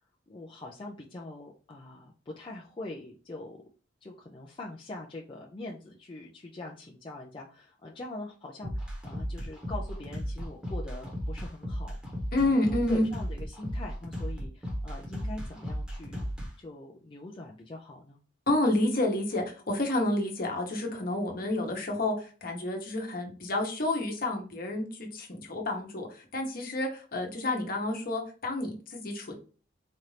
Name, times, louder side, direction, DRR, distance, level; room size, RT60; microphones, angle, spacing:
voice 1, 0.3-3.6 4.0-12.0 12.5-16.2 16.6-18.2, left 2 dB, 25° left, -2 dB, 0.4 m, -43 dB
sound 1, 8.6-16.5, equal, 5° right, 1.0 m, -35 dB
voice 2, 12.3-13.0 18.5-29.3, left 1 dB, 50° left, 2 dB, 1.0 m, -29 dB
4.3 x 2.6 x 3.2 m, 0.38 s
head